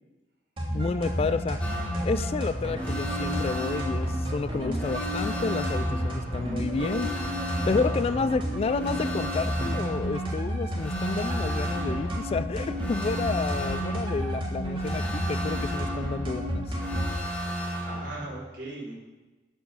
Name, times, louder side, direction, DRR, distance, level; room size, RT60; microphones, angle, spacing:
sound 1, 0.6-17.2, equal, 30° right, 2.4 m, -31 dB
voice 1, 0.7-1.6 2.0-7.1 7.7-16.7, left 4 dB, 35° left, 14 dB, 0.3 m, -30 dB
sound 2, 1.6-18.2, equal, 5° left, 2.9 m, -35 dB
voice 2, 17.4-18.9, right 2 dB, 75° right, -6 dB, 4.1 m, -40 dB
12.0 x 6.1 x 6.3 m, 1.1 s
head